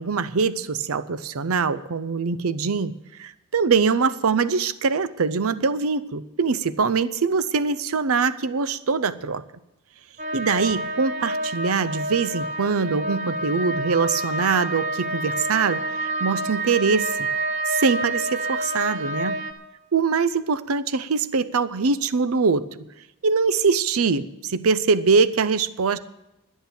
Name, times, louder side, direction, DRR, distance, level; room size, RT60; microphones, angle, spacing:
voice 1, 0.0-9.4 10.3-17.2 17.7-19.4 19.9-22.6 23.2-26.0, right 5 dB, 65° right, 15 dB, 0.6 m, -23 dB
sound 1, 10.2-19.5, right 1 dB, 35° right, 0.9 m, -28 dB
10.5 x 10.5 x 7.0 m, 0.91 s
head